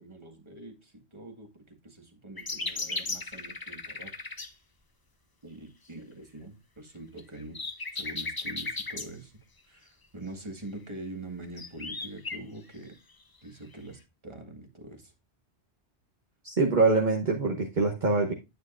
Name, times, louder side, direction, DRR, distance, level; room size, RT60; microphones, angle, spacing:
voice 1, 0.0-4.1 5.4-7.6 7.9-9.3 9.7-13.0 13.4-15.1, right 2 dB, 25° right, 1.8 m, -44 dB
sound 1, 2.4-4.5 7.2-9.1 11.4-12.4 13.7-13.8, left 3 dB, 25° left, 0.6 m, -36 dB
voice 2, 16.4-18.3, right 3 dB, 45° right, 1.2 m, -24 dB
9.9 x 9.1 x 2.5 m
omnidirectional pair, 1.2 m